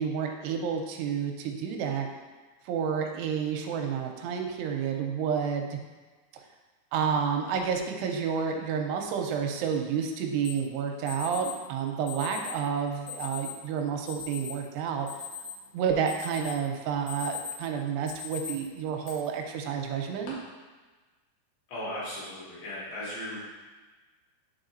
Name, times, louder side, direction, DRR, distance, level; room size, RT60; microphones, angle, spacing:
voice 1, 0.0-2.1 2.7-5.8 6.9-15.1 15.7-20.4, right 7 dB, 85° right, 3 dB, 2.7 m, -30 dB
Alarm, 10.4-10.5 11.1-11.5 12.1-12.6 13.1-13.5 14.1-14.5 14.9-15.7 16.1-16.6 16.9-17.6 18.1-18.5 19.0-19.1 19.9-20.3, left 7 dB, 65° left, 2.3 m, -38 dB
voice 2, 21.7-23.4, left 1 dB, 80° left, -9 dB, 4.4 m, -37 dB
9.1 x 4.8 x 2.6 m, 1.3 s
omnidirectional pair, 4.7 m